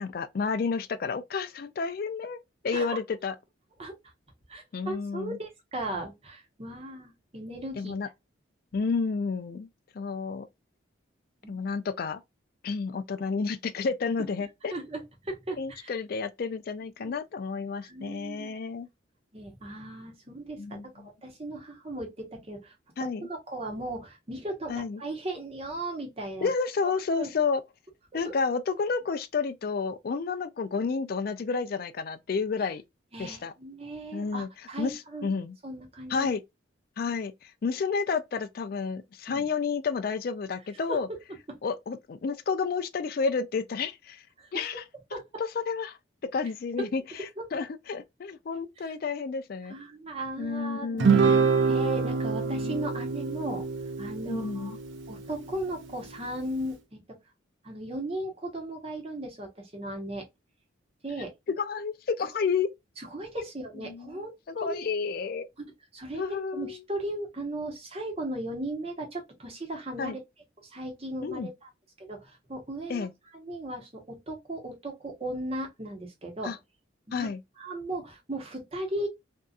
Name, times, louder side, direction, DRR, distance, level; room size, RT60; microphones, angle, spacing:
voice 1, 0.0-3.4 4.7-5.4 7.8-8.1 8.7-9.7 9.9-10.5 11.5-12.2 12.6-14.7 15.6-18.9 20.6-21.1 23.0-23.3 24.7-25.0 26.4-27.6 28.1-32.8 33.2-33.5 34.1-34.5 34.8-35.6 36.1-36.4 37.0-41.1 41.6-44.2 44.5-44.8 45.4-46.0 46.3-47.0 47.5-49.7 50.4-51.5 52.5-52.8 54.3-54.7 61.6-62.7 63.8-65.5 66.1-66.8 70.0-70.2 71.2-71.5 72.9-73.1 76.4-76.6 77.1-77.4, left 5 dB, 50° left, 0.3 m, -31 dB
voice 2, 4.5-7.9 11.4-11.6 14.7-15.9 17.0-17.2 17.8-18.5 19.3-22.7 23.0-26.5 26.8-27.3 33.1-35.3 35.6-36.3 39.3-39.5 40.9-41.2 44.4-44.6 45.1-45.2 46.8-46.9 47.4-47.5 48.8-48.9 49.7-53.6 54.0-54.7 55.1-57.0 57.6-60.3 61.0-61.3 63.0-64.3 64.6-64.8 65.6-65.7 65.9-70.2 70.6-71.7 72.0-73.1 73.3-76.5 77.1-77.3 77.6-79.1, right 1 dB, 30° right, 0.8 m, -37 dB
Guitar, 51.0-55.6, right 5 dB, 70° right, 0.6 m, -26 dB
2.6 x 2.3 x 2.3 m
head